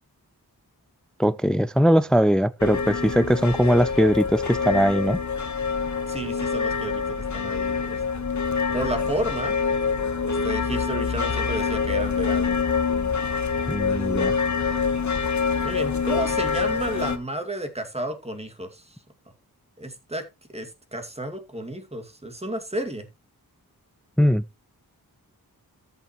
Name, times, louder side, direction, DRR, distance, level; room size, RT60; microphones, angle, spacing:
voice 1, 1.2-5.2 13.7-14.3 24.2-24.6, equal, ahead, 0.5 m, -20 dB
sound 1, 2.6-17.2, left 5 dB, 50° left, 1.2 m, -26 dB
voice 2, 6.1-7.0 7.3-8.3 8.7-9.6 10.2-12.6 15.6-18.9 19.8-20.2 20.5-23.1, right 1 dB, 15° right, 2.3 m, -32 dB
13.5 x 7.1 x 3.1 m
wide cardioid pair, 80°, 37 cm